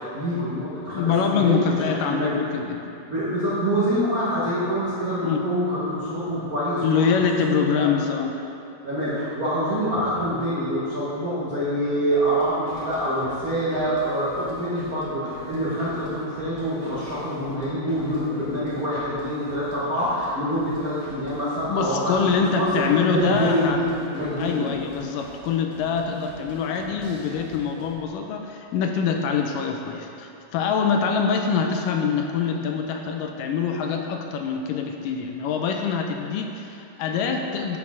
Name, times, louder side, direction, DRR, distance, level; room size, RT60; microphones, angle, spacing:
voice 1, 0.0-2.4 3.1-7.2 7.4-7.9 8.8-23.9 24.1-24.7, equal, 60° right, -10 dB, 0.9 m, -26 dB
voice 2, 0.9-2.9 5.2-5.4 6.8-8.3 21.7-23.8 24.4-37.8, left 6 dB, 80° left, 3 dB, 2.1 m, -24 dB
sound 1, 12.2-27.9, left 1 dB, 65° left, 2.5 m, -44 dB
10.5 x 6.2 x 3.7 m, 2.8 s
omnidirectional pair, 4.0 m